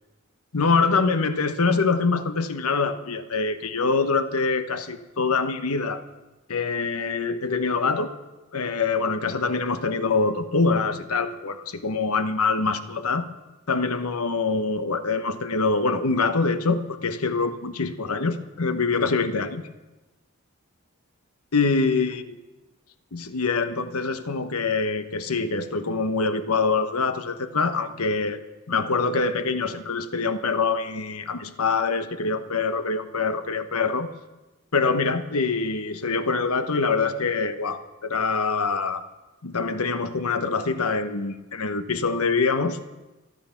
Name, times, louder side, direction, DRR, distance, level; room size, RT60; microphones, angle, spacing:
voice 1, 0.5-6.0 6.5-8.1 8.5-13.3 13.7-19.7 21.5-22.4 23.1-28.4 28.7-34.1 34.7-39.0 39.4-42.8, left 4 dB, 85° left, 10 dB, 1.1 m, -24 dB
26.0 x 9.4 x 5.8 m, 1.1 s
head